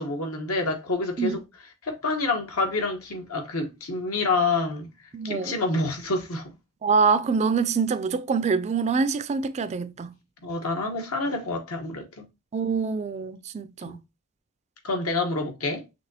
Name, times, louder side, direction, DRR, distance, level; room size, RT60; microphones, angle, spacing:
voice 1, 0.0-1.4 1.8-4.9 5.2-6.5 10.4-12.2 13.8-14.0 14.8-15.8, left 3 dB, 85° left, 1.3 m, -27 dB
voice 2, 5.1-5.5 6.8-10.1 12.5-13.9, right 5 dB, 30° right, 0.3 m, -25 dB
6.0 x 2.9 x 2.8 m
head